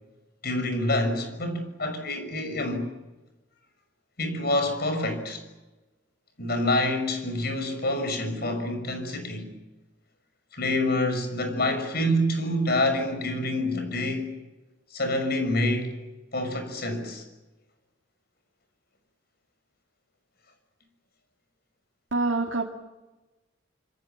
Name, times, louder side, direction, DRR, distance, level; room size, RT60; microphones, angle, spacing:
voice 1, 0.4-2.9 4.2-5.4 6.4-9.6 10.5-14.3 14.9-16.0 16.3-17.2, left 1 dB, 55° left, 6.3 m, -27 dB
voice 2, 22.1-22.6, right 3 dB, 75° right, 2.3 m, -25 dB
27.0 x 25.0 x 7.3 m
head